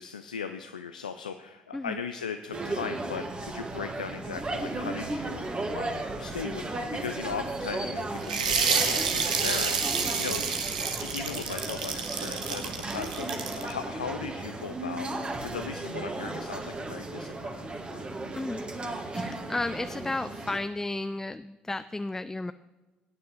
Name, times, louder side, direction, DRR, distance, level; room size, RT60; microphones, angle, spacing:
voice 1, 0.0-10.5 11.0-15.1 15.4-18.1, left 6 dB, 80° left, 8 dB, 0.4 m, -38 dB
sound 1, 2.5-20.6, right 2 dB, 25° right, 1.7 m, -35 dB
sound 2, 8.2-13.7, right 5 dB, 80° right, 0.9 m, -29 dB
voice 2, 18.3-18.6 19.1-22.5, left 2 dB, 10° left, 12 dB, 0.3 m, -33 dB
18.0 x 9.5 x 3.0 m, 1.2 s
figure-of-eight pair, 50°, 4 cm